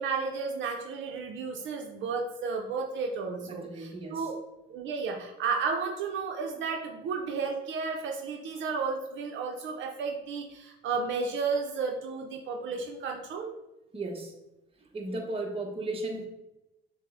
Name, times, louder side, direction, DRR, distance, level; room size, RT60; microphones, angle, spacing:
voice 1, 0.0-4.4 4.7-13.5, right 5 dB, 65° right, 2 dB, 0.6 m, -33 dB
voice 2, 3.5-4.3 13.9-14.3 14.8-16.3, right 2 dB, 25° right, 1 dB, 0.9 m, -35 dB
6.0 x 2.1 x 3.7 m, 0.97 s
cardioid pair, 100°, 21 cm